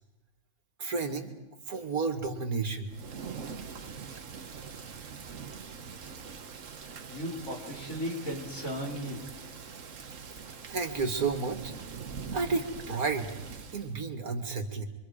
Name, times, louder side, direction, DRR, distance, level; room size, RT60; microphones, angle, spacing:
voice 1, 0.8-1.3 1.7-2.9 10.7-11.7 12.3-13.3 13.7-14.9, right 4 dB, 80° right, 4 dB, 2.5 m, -31 dB
Thunder / Rain, 2.9-14.0, right 6 dB, 60° right, 1.5 m, -43 dB
voice 2, 7.1-9.4, equal, 65° left, -3 dB, 5.2 m, -36 dB
27.0 x 24.0 x 5.0 m, 1.1 s
omnidirectional pair, 1.5 m